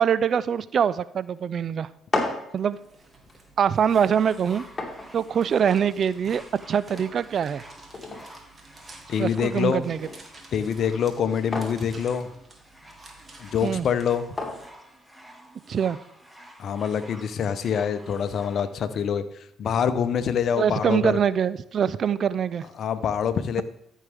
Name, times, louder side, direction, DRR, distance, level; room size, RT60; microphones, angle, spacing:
voice 1, 0.0-1.9 2.5-2.8 3.6-4.6 5.1-6.4 6.7-7.6 9.2-10.0 13.6-13.9 15.7-16.0 20.6-22.6, right 8 dB, 55° right, 17 dB, 0.4 m, -23 dB
sound 1, 1.8-15.7, left 2 dB, 25° left, 2.5 m, -38 dB
sound 2, 2.6-14.7, right 2 dB, 30° right, 2.1 m, -51 dB
sound 3, 4.1-18.7 19.5-19.6, equal, 10° right, 1.7 m, -50 dB
voice 2, 9.1-9.8 10.5-12.3 13.4-14.3 16.6-21.2 22.8-23.6, left 7 dB, 55° left, 12 dB, 0.8 m, -25 dB
14.0 x 6.4 x 3.5 m, 0.76 s
hypercardioid pair, 50°, 0 cm